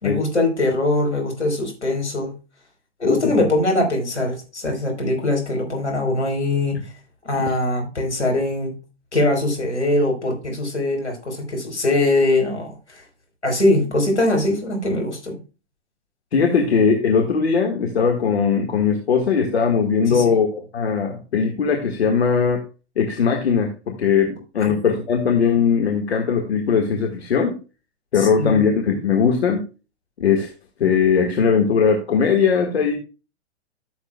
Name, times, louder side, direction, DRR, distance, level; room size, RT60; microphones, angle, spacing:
voice 1, 0.0-2.3 3.0-6.8 7.2-8.7 9.1-13.0 13.4-15.4 20.1-20.2 28.2-28.6, left 2 dB, 85° left, 2 dB, 4.2 m, -22 dB
voice 2, 16.3-22.6 23.0-27.6 28.1-29.6 30.2-30.5 30.8-33.0, left 6 dB, 70° left, 3 dB, 1.8 m, -19 dB
14.0 x 7.1 x 2.3 m, 0.31 s
figure-of-eight pair, 105°, 33 cm